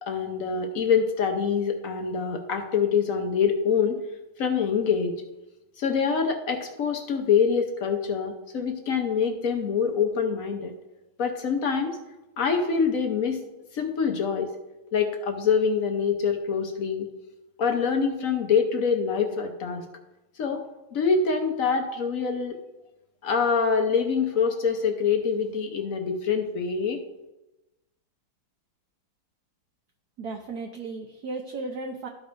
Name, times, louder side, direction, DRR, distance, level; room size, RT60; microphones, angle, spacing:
voice 1, 0.0-4.0 4.4-5.1 5.8-10.7 11.2-12.0 12.4-13.4 13.7-14.5 14.9-17.1 17.6-19.8 20.4-20.6 20.9-22.6 23.2-27.0, left 6 dB, 60° left, 4 dB, 0.9 m, -25 dB
voice 2, 30.2-32.1, right 3 dB, 65° right, 2 dB, 1.0 m, -35 dB
13.5 x 5.3 x 2.6 m, 1.0 s
omnidirectional pair, 2.3 m